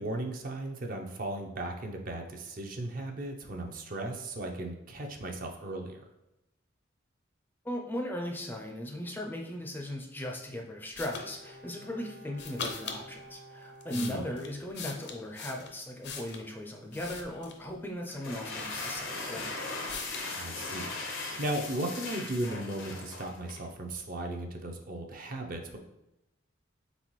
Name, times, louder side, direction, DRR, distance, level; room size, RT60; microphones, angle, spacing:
voice 1, 0.0-6.0 13.9-14.3 20.4-25.8, right 1 dB, 45° right, 3 dB, 0.5 m, -36 dB
voice 2, 7.6-19.6, left 1 dB, 10° left, 1 dB, 0.4 m, -38 dB
sound 1, 11.0-11.3 12.4-13.0 13.6-16.5 16.9-17.7 18.2-18.3 18.6-19.5 19.9-20.3, left 6 dB, 60° left, 0.5 m, -41 dB
Bowed string instrument, 11.1-14.9 15.2-15.3, equal, 85° right, 1.4 m, -51 dB
sound 2, 18.1-23.7, left 3 dB, 90° left, 0.8 m, -38 dB
4.1 x 3.8 x 3.1 m, 0.90 s
head